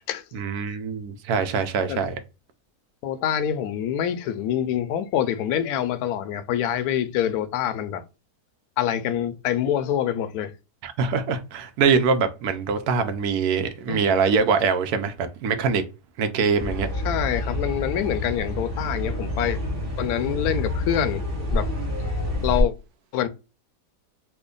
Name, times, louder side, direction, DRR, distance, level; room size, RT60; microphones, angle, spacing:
voice 1, 0.3-2.1 10.8-15.8 16.2-16.9, right 5 dB, 70° right, 1.1 m, -23 dB
voice 2, 3.0-8.0 8.8-10.5 13.9-14.1 17.0-19.6 20.0-21.2 21.5-21.7 22.4-22.7 23.1-23.3, left 10 dB, 70° left, 1.0 m, -26 dB
sound 1, 16.6-22.6, left 1 dB, 15° right, 0.7 m, -28 dB
3.3 x 2.1 x 3.7 m
omnidirectional pair, 1.8 m